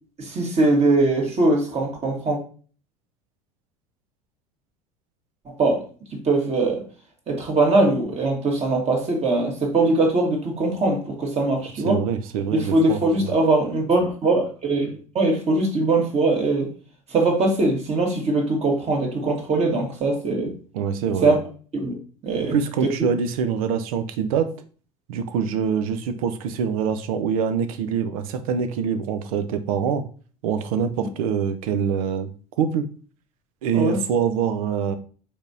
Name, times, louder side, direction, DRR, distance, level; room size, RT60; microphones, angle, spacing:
voice 1, 0.2-2.4 5.5-5.8 6.2-6.8 7.3-12.0 12.5-16.7 17.1-20.5 21.2-21.4 21.7-21.9 22.2-22.6 31.0-31.1 33.7-34.0, right 2 dB, 35° right, 1.6 m, -21 dB
voice 2, 11.9-13.3 20.7-21.3 22.5-24.5 25.1-30.0 30.4-32.3 32.6-32.9 33.6-34.9, right 7 dB, 70° right, 0.6 m, -24 dB
4.8 x 3.5 x 2.7 m
hypercardioid pair, 75°, 19 cm